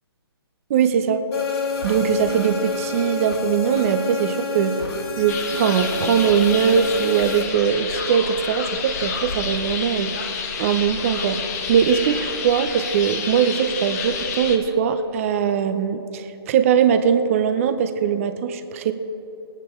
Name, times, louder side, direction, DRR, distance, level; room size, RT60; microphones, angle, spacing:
voice 1, 0.7-1.2 1.8-4.7 5.2-10.1 10.6-11.4 11.7-18.9, right 7 dB, 30° right, 10 dB, 0.8 m, -21 dB
sound 1, 1.3-7.4, left 4 dB, 75° left, 2.3 m, -28 dB
sound 2, 5.3-14.6, left 5 dB, 40° left, 1.3 m, -29 dB
20.0 x 9.1 x 4.5 m, 3.0 s
figure-of-eight pair, 145°, 14 cm